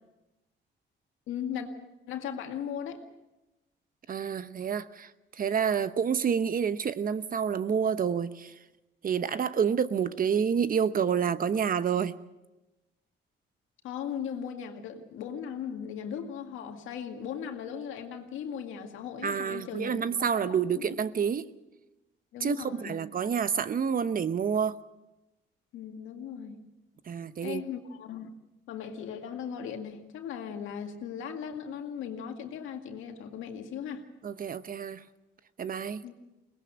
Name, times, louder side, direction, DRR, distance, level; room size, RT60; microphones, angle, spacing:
voice 1, 1.3-1.7 2.1-3.0 13.8-20.8 22.3-23.0 25.7-26.6 27.4-28.3 28.7-34.0 36.0-36.2, left 8 dB, 90° left, 4 dB, 2.1 m, -38 dB
voice 2, 4.1-5.1 5.4-8.5 9.0-12.1 19.2-21.5 22.4-24.8 27.1-27.6 34.2-35.0 35.6-36.0, right 7 dB, 45° right, 13 dB, 0.9 m, -28 dB
22.5 x 19.0 x 6.4 m, 1.0 s
cardioid pair, 90°, 20 cm